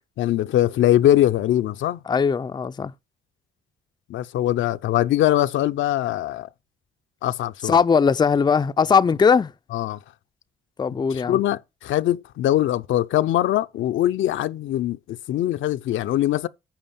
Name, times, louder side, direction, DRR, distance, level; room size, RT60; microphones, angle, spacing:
voice 1, 0.2-2.0 4.1-6.5 7.2-7.8 9.7-10.0 11.1-16.5, left 13 dB, 75° left, 0.7 m, -22 dB
voice 2, 2.1-2.9 7.6-9.5 10.8-11.4, left 6 dB, 20° left, 0.4 m, -19 dB
8.8 x 5.1 x 7.1 m
cardioid pair, 90°, 20 cm